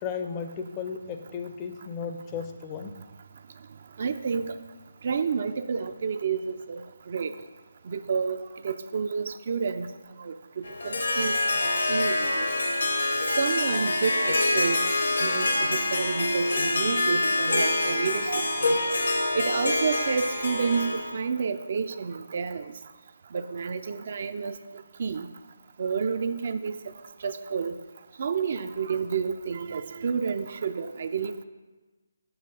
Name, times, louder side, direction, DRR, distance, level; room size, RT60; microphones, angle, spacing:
voice 1, 0.0-2.9, left 6 dB, 20° left, 6 dB, 0.4 m, -35 dB
voice 2, 4.0-4.6 5.0-7.3 7.9-8.4 8.6-9.9 10.2-11.3 11.9-12.5 13.4-14.8 15.2-18.8 19.3-22.6 23.3-24.6 25.0-25.3 25.8-26.8 27.2-27.8 28.2-31.4, right 5 dB, 50° right, 11 dB, 0.3 m, -30 dB
Harp, 10.6-21.2, left 2 dB, 70° left, 0.8 m, -26 dB
7.0 x 3.7 x 5.1 m, 1.2 s
figure-of-eight pair, 145°, 0 cm